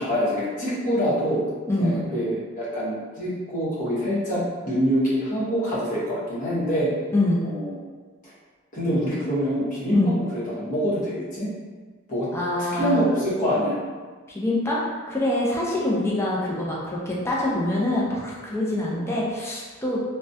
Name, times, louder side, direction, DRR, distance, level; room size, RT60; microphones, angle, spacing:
voice 1, 0.0-1.4 1.8-6.9 7.4-7.8 8.2-8.3 8.7-11.5 12.1-12.3 12.6-13.8 18.8-18.9, equal, 40° left, -9 dB, 0.9 m, -25 dB
voice 2, 12.3-13.0 14.3-20.1, left 1 dB, 10° left, -5 dB, 0.4 m, -25 dB
2.3 x 2.1 x 2.6 m, 1.4 s
head